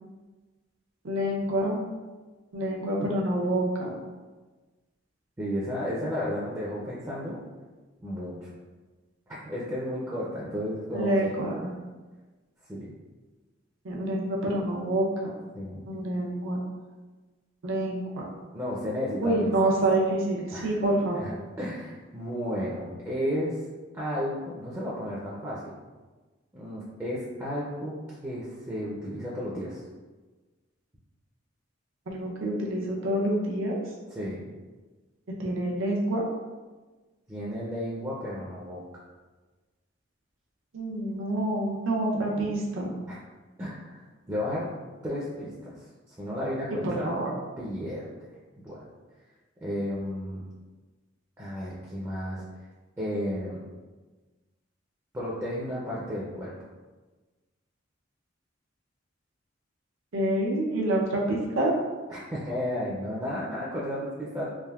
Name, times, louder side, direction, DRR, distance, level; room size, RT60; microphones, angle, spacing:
voice 1, 1.0-1.8 2.5-3.9 10.9-11.7 13.8-15.3 15.9-16.6 17.6-18.3 19.2-21.2 32.1-33.8 35.4-36.2 40.7-42.9 46.8-47.3 60.1-61.7, right 1 dB, 85° right, -2 dB, 0.6 m, -27 dB
voice 2, 5.4-7.4 8.0-8.5 9.3-11.3 12.7-12.9 15.5-15.8 18.5-19.7 20.5-20.8 21.1-23.6 23.9-25.7 26.5-27.9 28.2-29.8 34.1-34.4 37.3-38.8 43.1-43.2 43.6-44.7 45.0-45.8 46.2-47.1 47.6-48.0 48.6-48.8 49.6-50.4 51.4-52.4 53.0-53.6 55.1-56.5 62.1-64.5, equal, 15° right, -7 dB, 0.4 m, -33 dB
3.4 x 2.4 x 2.3 m, 1.3 s
head